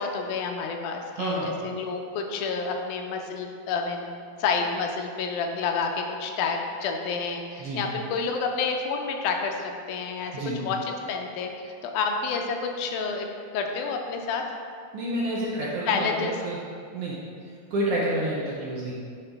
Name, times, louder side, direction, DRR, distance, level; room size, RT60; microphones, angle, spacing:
voice 1, 0.0-4.1 4.4-10.3 10.6-13.3 13.5-14.4 15.9-16.3, left 5 dB, 85° left, 3 dB, 2.1 m, -29 dB
voice 2, 1.1-1.6 7.6-7.9 10.3-10.6 14.9-16.1 16.4-16.6 16.9-17.2 17.7-18.9, right 1 dB, 75° right, -5 dB, 1.4 m, -29 dB
9.4 x 3.6 x 3.4 m, 2.2 s
omnidirectional pair, 3.6 m